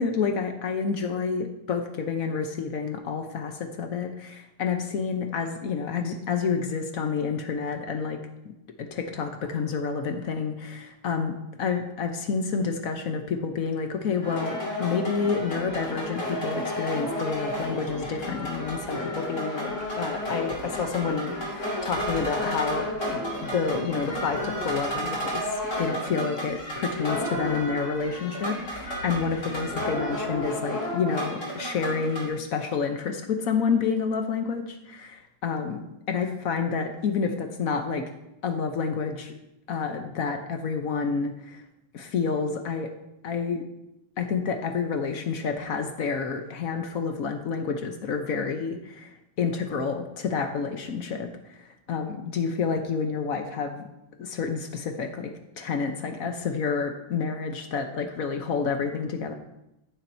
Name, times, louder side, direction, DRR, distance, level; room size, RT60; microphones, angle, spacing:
voice 1, 0.0-8.5 8.8-25.5 25.8-38.1 38.4-39.3 39.7-41.6 41.9-42.9 43.2-43.6 44.2-53.9 54.2-59.3, left 5 dB, 55° left, 5 dB, 1.0 m, -29 dB
sound 1, 14.2-32.3, equal, 35° left, 3.0 m, -32 dB
14.5 x 7.3 x 2.7 m, 0.90 s
omnidirectional pair, 2.2 m